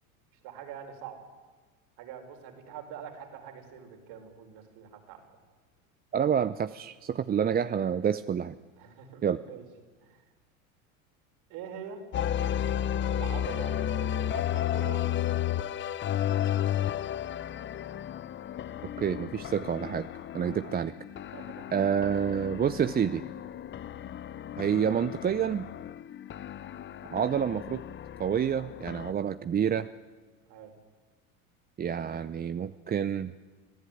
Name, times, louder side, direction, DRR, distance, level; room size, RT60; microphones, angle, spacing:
voice 1, 0.4-1.2 2.0-5.2 8.8-9.6 10.0-10.2 11.5-12.0 13.1-15.7 20.4-20.7 21.3-21.7 30.5-30.7, right 8 dB, 60° right, 4 dB, 5.2 m, -44 dB
voice 2, 6.1-8.6 9.2-9.4 19.0-20.1 20.3-20.9 21.7-23.2 24.6-25.7 27.1-27.8 28.2-29.9 31.8-33.3, right 8 dB, 20° right, 13 dB, 0.6 m, -28 dB
sound 1, 12.1-29.1, left 11 dB, 25° left, 0.7 m, -33 dB
25.5 x 16.0 x 9.3 m, 1.4 s
hypercardioid pair, 90°, 43 cm